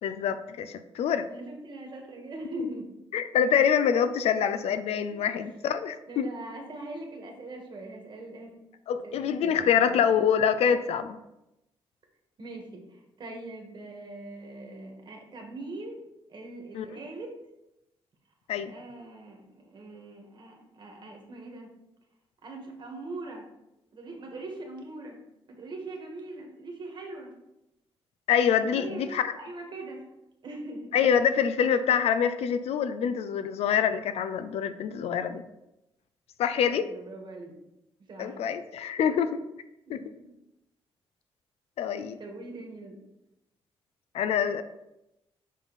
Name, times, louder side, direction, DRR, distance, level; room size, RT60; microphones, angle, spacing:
voice 1, 0.0-1.3 2.6-2.7 3.1-6.3 8.9-11.2 16.7-16.9 18.5-18.7 28.3-29.3 30.9-35.4 36.4-36.9 38.2-39.4 39.9-40.0 41.8-42.2 44.1-44.6, left 8 dB, 85° left, 11 dB, 0.5 m, -25 dB
voice 2, 1.3-2.9 4.2-4.3 5.1-5.3 6.1-8.5 9.0-9.9 12.4-16.0 16.3-17.3 18.7-21.7 22.4-23.5 23.9-25.2 25.5-27.3 28.6-30.1 30.4-30.9 36.7-37.6 38.0-38.4 39.9-40.4 42.2-43.0, right 2 dB, 50° right, 1 dB, 1.5 m, -42 dB
7.3 x 3.8 x 4.0 m, 0.90 s
cardioid pair, 125°, 10 cm